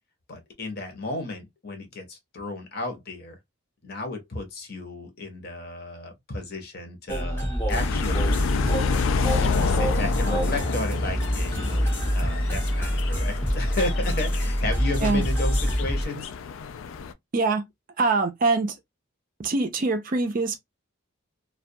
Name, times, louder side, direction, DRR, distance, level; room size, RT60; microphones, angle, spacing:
voice 1, 0.3-3.4 3.8-8.5 9.4-11.9 12.1-16.3, left 2 dB, 50° left, 0.8 m, -33 dB
sound 1, 7.1-16.0, equal, 10° left, 0.6 m, -25 dB
sound 2, 7.7-17.1, left 6 dB, 70° left, 0.3 m, -30 dB
voice 2, 17.3-17.6 18.0-18.8 19.4-20.6, right 3 dB, 40° right, 0.4 m, -23 dB
2.2 x 2.2 x 2.6 m
head